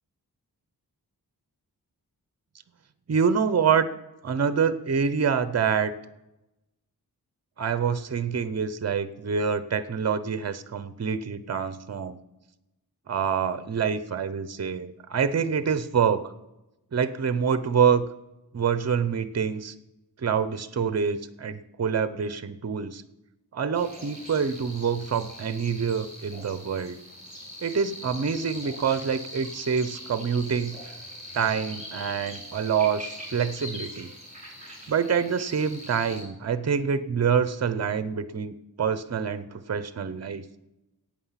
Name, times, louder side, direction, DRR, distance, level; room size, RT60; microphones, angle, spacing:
voice 1, 3.1-3.9 4.2-5.9 7.6-12.2 13.1-16.3 16.9-18.0 18.5-19.7 20.2-23.0 23.5-27.0 27.6-30.8 31.3-34.1 34.9-40.5, right 6 dB, 45° right, 13 dB, 0.7 m, -26 dB
sound 1, 23.7-36.2, left 1 dB, 20° right, 4.2 m, -42 dB
16.0 x 8.7 x 5.7 m, 0.97 s
wide cardioid pair, 105°, 37 cm